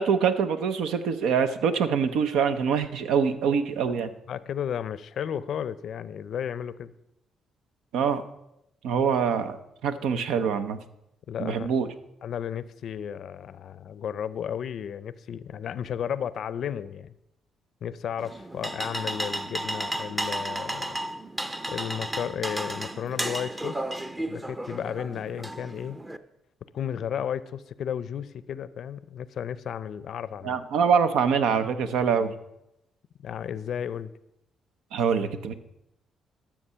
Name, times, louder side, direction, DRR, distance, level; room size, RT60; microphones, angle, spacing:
voice 1, 0.0-4.1 7.9-8.2 8.8-9.6 9.8-10.8 11.4-11.9 30.4-32.3 34.9-35.5, right 6 dB, 85° right, 10 dB, 0.7 m, -24 dB
voice 2, 4.3-6.9 11.3-11.7 12.2-17.1 17.8-21.0 21.7-23.8 24.3-26.0 26.7-30.6 33.2-34.1, left 8 dB, 65° left, 17 dB, 0.5 m, -33 dB
sound 1, 18.2-26.2, right 1 dB, 15° right, 0.6 m, -33 dB
12.5 x 7.2 x 5.6 m, 0.86 s
cardioid pair, 90°, 0 cm